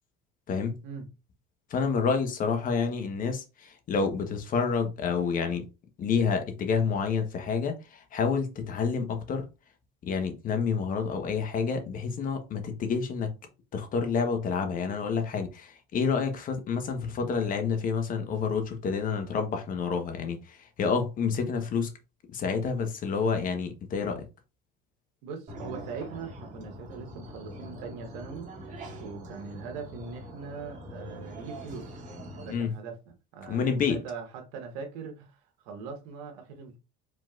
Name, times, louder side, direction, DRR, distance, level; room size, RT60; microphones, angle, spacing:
voice 1, 0.5-0.8 1.7-5.7 6.0-9.5 10.0-13.3 13.7-21.9 22.3-24.2 32.5-32.7 33.5-34.0, left 5 dB, 40° left, 1.1 m, -29 dB
voice 2, 25.2-28.5 29.0-31.9 32.4-33.0 33.3-36.8, right 5 dB, 80° right, 1.5 m, -41 dB
sound 1, 25.5-32.5, right 1 dB, 40° right, 2.0 m, -43 dB
5.1 x 3.8 x 2.5 m
supercardioid pair, 115°, 20 cm